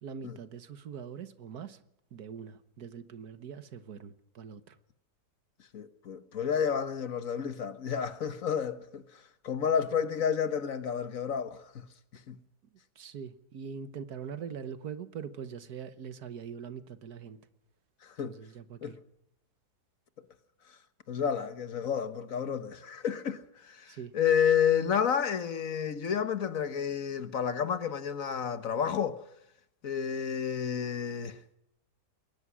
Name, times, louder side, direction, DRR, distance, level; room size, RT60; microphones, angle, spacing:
voice 1, 0.0-1.8 2.1-4.8 13.0-17.4 18.2-19.0 23.9-24.1, right 7 dB, 70° right, 1.7 m, -42 dB
voice 2, 5.7-11.9 12.1-12.4 18.0-18.4 18.8-19.0 21.1-29.2 29.8-31.4, left 7 dB, 55° left, 1.5 m, -30 dB
22.0 x 19.5 x 6.2 m
omnidirectional pair, 1.7 m